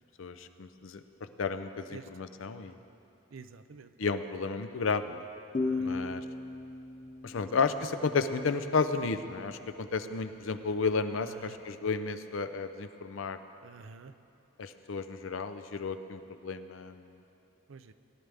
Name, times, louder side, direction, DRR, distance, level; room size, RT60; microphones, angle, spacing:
voice 1, 0.2-1.0 1.4-2.8 4.0-5.2 5.8-6.2 7.2-13.4 14.6-17.1, left 4 dB, 75° left, 10 dB, 0.6 m, -32 dB
voice 2, 3.3-3.9 5.6-6.0 7.3-7.5 11.2-11.6 13.6-14.1 17.7-17.9, right 5 dB, 75° right, 11 dB, 0.5 m, -49 dB
sound 1, 5.5-9.0, left 3 dB, 35° left, 0.7 m, -36 dB
18.0 x 11.0 x 3.5 m, 2.7 s
head